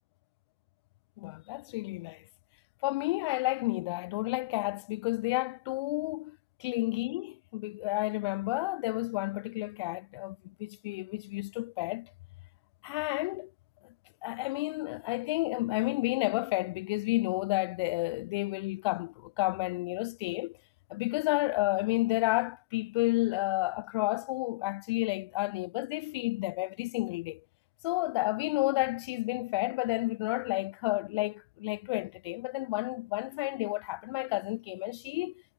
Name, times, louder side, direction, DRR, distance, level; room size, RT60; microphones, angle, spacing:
voice 1, 1.2-2.2 2.8-12.1 12.8-13.5 13.8-13.9 14.2-20.6 20.9-27.4 27.8-35.4, left 21 dB, 25° left, 6.6 m, -31 dB
hypercardioid pair, 165°, 29 cm